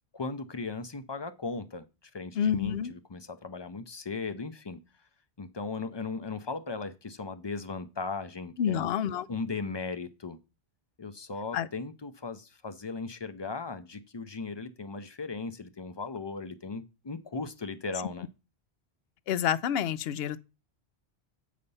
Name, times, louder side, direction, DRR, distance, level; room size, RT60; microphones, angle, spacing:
voice 1, 0.1-1.8 2.1-4.8 5.4-8.9 9.3-10.4 11.0-18.3, left 4 dB, 30° left, 0.5 m, -37 dB
voice 2, 2.3-2.9 8.6-9.3 11.5-11.7 19.3-20.4, left 8 dB, 70° left, 0.8 m, -28 dB
7.9 x 5.0 x 5.4 m
omnidirectional pair, 1.1 m